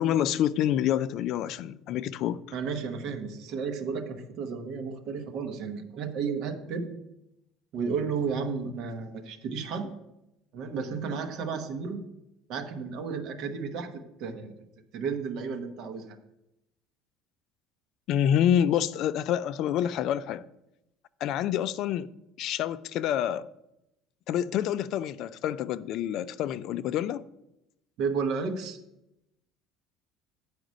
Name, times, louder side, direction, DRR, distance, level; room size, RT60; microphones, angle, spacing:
voice 1, 0.0-2.4 18.1-20.4 21.2-22.1 22.4-23.5 24.3-27.2, left 10 dB, 45° left, 0.3 m, -27 dB
voice 2, 2.5-6.9 7.7-9.9 10.5-12.0 12.5-13.9 14.2-14.6 14.9-16.2 28.0-28.8, right 5 dB, 45° right, 1.1 m, -32 dB
9.5 x 4.9 x 6.3 m
cardioid pair, 170°, 0 cm